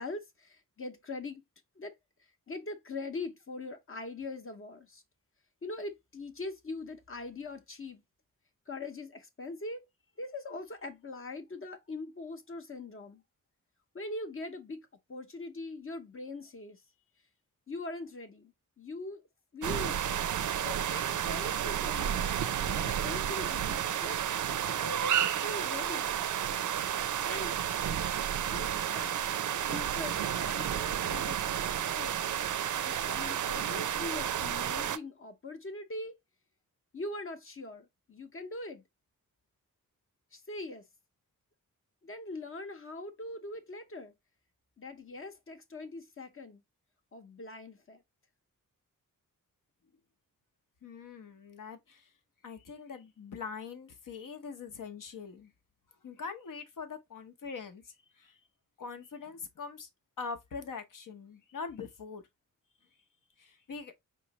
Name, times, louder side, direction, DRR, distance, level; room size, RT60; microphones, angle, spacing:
voice 1, 0.0-1.4 1.8-2.0 2.5-5.0 5.6-8.0 8.7-9.9 10.2-13.2 13.9-16.8 17.7-19.2 19.5-20.3 20.6-22.3 22.7-24.2 24.7-26.1 27.2-27.5 28.5-29.1 29.6-31.4 31.9-32.2 32.8-36.2 36.9-38.8 40.3-40.8 42.0-44.1 44.8-46.6 47.1-48.0, left 2 dB, 40° left, 0.8 m, -42 dB
sound 1, 19.6-35.0, right 10 dB, 65° right, 0.4 m, -31 dB
voice 2, 50.8-52.1 52.4-55.5 56.0-58.4 58.8-59.9 60.2-62.2 63.4-63.9, left 5 dB, 70° left, 0.9 m, -43 dB
4.7 x 3.1 x 2.9 m
wide cardioid pair, 120°, 33 cm